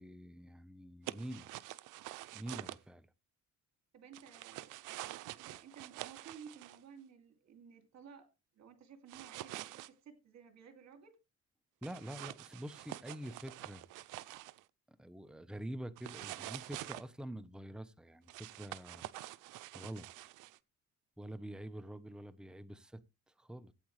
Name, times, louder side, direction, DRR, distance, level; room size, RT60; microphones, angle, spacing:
voice 1, 0.0-1.5 2.3-3.1 11.8-13.8 14.9-19.1 19.7-20.1 21.2-23.0 23.4-23.7, right 1 dB, 5° right, 0.9 m, -46 dB
sound 1, 1.1-2.8 4.1-6.8 9.1-9.9 11.8-14.6 16.0-17.0 18.3-20.6, right 16 dB, 90° right, 0.6 m, -47 dB
voice 2, 3.9-4.7 5.3-8.3 8.6-11.2, right 7 dB, 65° right, 2.6 m, -55 dB
16.0 x 8.6 x 3.3 m
cardioid pair, 90°, 30 cm